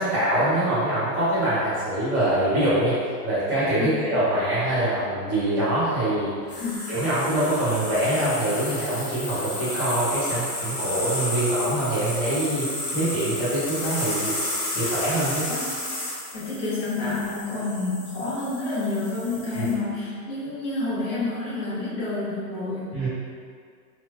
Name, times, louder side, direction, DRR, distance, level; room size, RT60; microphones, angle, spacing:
voice 1, 0.0-6.6 6.9-14.3 14.7-15.5 19.5-19.7 22.9-23.1, right 1 dB, 25° left, -17 dB, 0.3 m, -24 dB
sound 1, 6.5-19.7, left 1 dB, 65° left, 1.1 m, -32 dB
voice 2, 16.3-23.1, left 3 dB, 45° left, -8 dB, 1.1 m, -29 dB
3.0 x 2.2 x 2.3 m, 2.2 s
hypercardioid pair, 150°, 50 cm